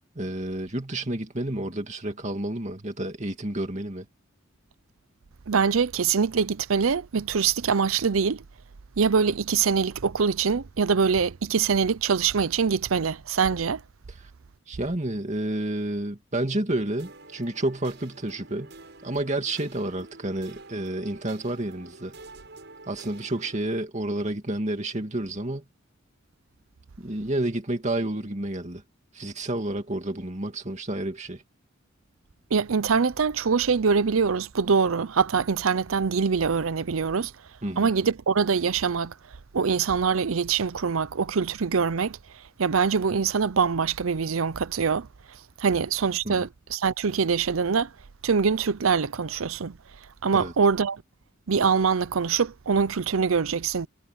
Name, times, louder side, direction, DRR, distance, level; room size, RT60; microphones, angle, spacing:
voice 1, 0.2-4.1 14.7-18.7 19.0-22.1 22.9-25.6 27.0-28.8 29.1-31.4 37.6-37.9 46.2-46.5 50.4-50.5, right 1 dB, 35° right, 2.3 m, -30 dB
voice 2, 5.5-8.4 9.0-13.8 32.5-37.3 37.8-39.1 39.5-42.2 42.6-45.1 45.6-47.9 48.2-49.8 50.2-51.0 51.5-53.9, right 5 dB, 85° right, 0.6 m, -24 dB
sound 1, 17.0-23.8, right 3 dB, 55° right, 7.5 m, -48 dB
head